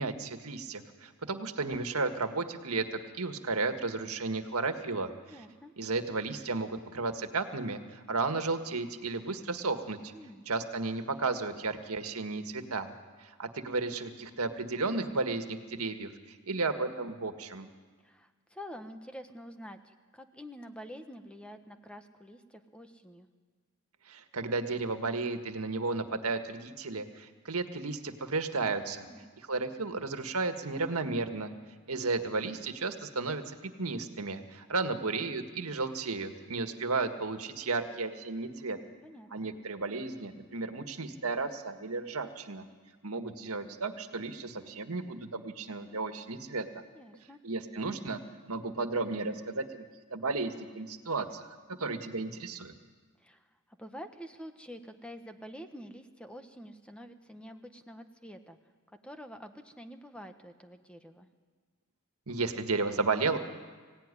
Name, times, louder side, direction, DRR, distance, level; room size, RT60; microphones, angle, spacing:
voice 1, 0.0-5.1 5.8-10.1 10.5-12.9 13.2-17.7 24.1-29.1 29.5-31.5 31.9-38.8 39.3-42.7 43.0-46.7 47.4-48.2 48.5-49.9 50.1-51.5 51.8-52.7 62.3-63.4, right 3 dB, 85° right, 7 dB, 1.7 m, -33 dB
voice 2, 5.3-5.7 10.1-10.4 18.0-23.3 29.0-29.3 39.0-39.5 46.9-47.4 53.2-53.5 53.8-58.6 59.0-61.3, equal, 5° left, 7 dB, 1.3 m, -47 dB
24.0 x 17.0 x 9.9 m, 1.5 s
head